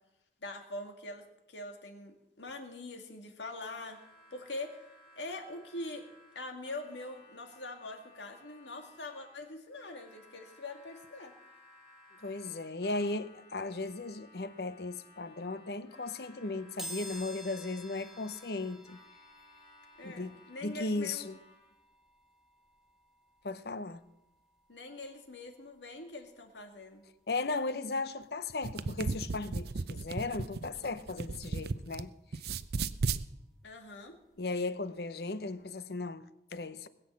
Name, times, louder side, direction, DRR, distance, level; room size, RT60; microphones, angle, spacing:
voice 1, 0.4-4.0 4.3-4.8 5.2-6.0 6.4-11.3 20.0-21.3 24.7-27.0 33.6-34.2, left 2 dB, 85° left, 2.2 m, -43 dB
Harmonica, 3.6-21.8, left 1 dB, 30° left, 2.8 m, -59 dB
voice 2, 12.2-19.0 20.0-21.4 23.4-24.0 27.3-32.1 34.4-36.9, left 3 dB, 60° left, 0.8 m, -36 dB
sound 1, 16.8-27.5 27.9-28.0 29.2-29.3 29.6-31.6 32.0-34.6 35.0-35.2 35.5-35.6, equal, ahead, 1.9 m, -52 dB
sound 2, 28.5-32.0 32.3-33.2, right 4 dB, 60° right, 0.5 m, -35 dB
20.5 x 7.8 x 7.5 m
head